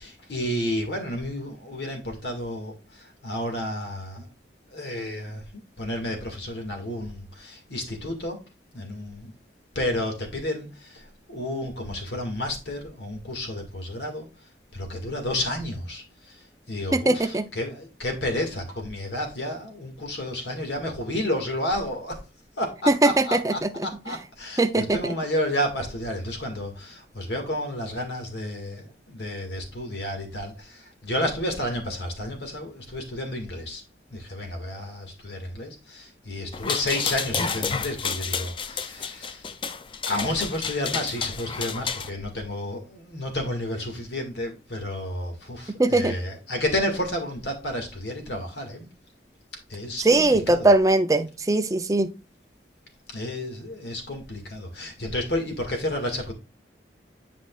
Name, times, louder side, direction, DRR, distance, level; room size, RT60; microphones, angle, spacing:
voice 1, 0.0-4.3 4.7-8.4 8.7-9.3 9.8-14.3 14.7-16.4 16.7-22.2 22.6-33.8 34.1-39.5 40.1-48.9 49.7-50.7 53.1-56.3, left 1 dB, 75° left, 1.9 m, -31 dB
voice 2, 16.9-17.4 22.9-23.7 24.6-25.0 45.8-46.1 50.0-52.1, right 2 dB, 20° right, 0.5 m, -20 dB
sound 1, 36.5-42.1, left 6 dB, 30° left, 0.4 m, -30 dB
10.5 x 5.1 x 2.4 m
head